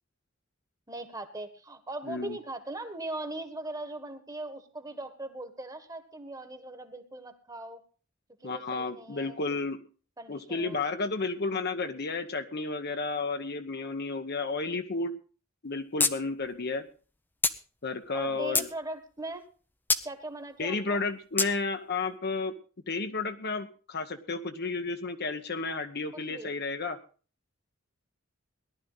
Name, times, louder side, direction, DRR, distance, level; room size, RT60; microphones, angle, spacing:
voice 1, 0.9-7.8 8.4-9.4 10.2-10.8 18.1-19.4 20.0-21.0 26.1-26.5, right 2 dB, 15° right, 8 dB, 1.5 m, -40 dB
voice 2, 2.1-2.4 8.4-9.8 10.3-15.1 15.6-16.9 17.8-18.7 20.6-22.5 22.9-27.0, left 3 dB, 50° left, 8 dB, 1.0 m, -32 dB
sound 1, 16.0-16.1 16.4-16.5 17.4-17.6 18.2-18.7 19.9-20.0 21.4-21.5, left 3 dB, 10° left, 0.6 m, -25 dB
18.0 x 11.5 x 3.9 m, 0.38 s
head